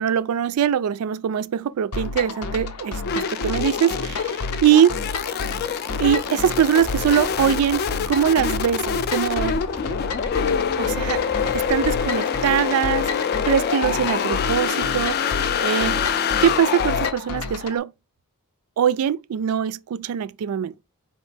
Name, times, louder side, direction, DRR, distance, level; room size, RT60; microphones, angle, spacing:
voice 1, 0.0-5.0 6.0-7.8 8.1-9.6 10.8-11.2 11.5-15.3 15.6-16.0 16.4-17.9 18.8-20.8, right 9 dB, 70° right, 0.3 m, -22 dB
sound 1, 1.9-17.8, left 3 dB, 90° left, 0.7 m, -31 dB
sound 2, 3.1-17.1, left 7 dB, 45° left, 0.3 m, -25 dB
sound 3, 6.8-12.0, equal, 15° left, 0.7 m, -39 dB
4.9 x 3.1 x 3.3 m
head